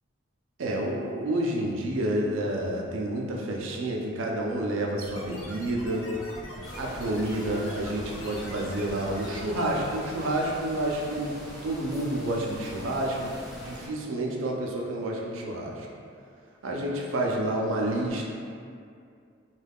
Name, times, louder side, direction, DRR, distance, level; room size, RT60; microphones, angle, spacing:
voice 1, 0.6-6.1 6.7-11.3 11.6-15.9 16.6-18.3, right 1 dB, 75° right, -2 dB, 0.4 m, -29 dB
sound 1, 5.0-10.2, left 1 dB, 85° left, 0.5 m, -42 dB
sound 2, 6.6-13.9, equal, ahead, 0.5 m, -43 dB
2.3 x 2.3 x 3.4 m, 2.3 s
head